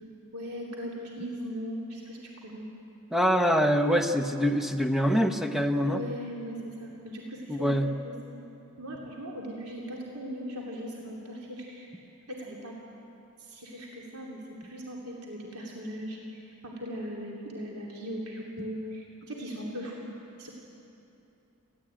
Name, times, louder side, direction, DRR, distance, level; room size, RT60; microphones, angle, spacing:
voice 1, 0.3-2.7 5.9-8.1 8.8-11.9 12.3-12.7 13.4-20.0 20.4-20.5, equal, 85° right, -2 dB, 2.9 m, -39 dB
voice 2, 3.1-6.0 7.5-7.9, equal, ahead, 6 dB, 1.0 m, -24 dB
29.5 x 12.5 x 8.9 m, 2.8 s
head